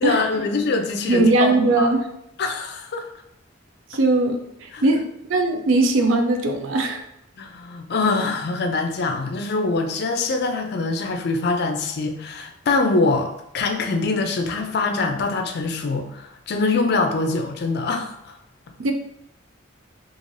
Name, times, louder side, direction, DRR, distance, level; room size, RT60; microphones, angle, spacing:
voice 1, 0.0-1.9 2.4-3.0 4.7-4.8 7.4-18.3, left 3 dB, 55° left, 5 dB, 0.4 m, -24 dB
voice 2, 1.1-2.1 3.9-5.0 5.3-7.0 18.8-18.9, right 2 dB, 75° right, 5 dB, 0.4 m, -19 dB
3.1 x 2.5 x 2.5 m, 0.78 s
head